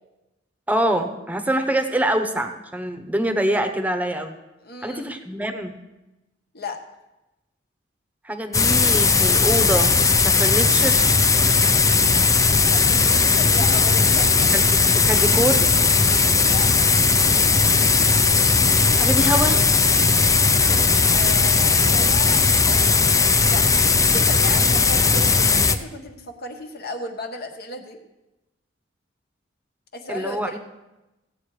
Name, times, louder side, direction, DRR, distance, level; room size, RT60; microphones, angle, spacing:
voice 1, 0.7-4.3 4.8-5.7 8.2-9.9 10.2-11.1 14.5-14.7 15.1-15.7 19.0-19.6 19.8-19.9 30.1-30.6, right 1 dB, 10° right, 7 dB, 1.0 m, -24 dB
voice 2, 4.6-5.2 6.5-6.8 12.7-14.5 16.4-16.9 21.1-23.7 24.0-28.0 29.9-30.6, left 3 dB, 55° left, 4 dB, 1.3 m, -35 dB
sound 1, 8.5-25.8, left 4 dB, 15° left, 0.5 m, -17 dB
16.5 x 8.3 x 4.9 m, 1.0 s
head